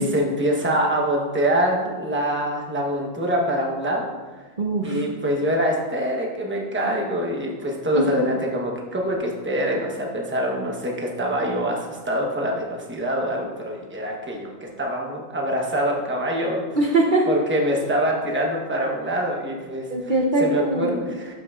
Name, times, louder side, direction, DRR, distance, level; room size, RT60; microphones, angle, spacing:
voice 1, 0.0-4.1 4.8-16.7 17.3-19.9 20.4-21.3, equal, 10° right, -1 dB, 0.9 m, -24 dB
voice 2, 4.6-5.0 7.9-8.1 16.7-17.3 19.9-20.9, right 2 dB, 45° right, -1 dB, 0.9 m, -21 dB
12.0 x 5.6 x 2.4 m, 1.4 s
omnidirectional pair, 1.2 m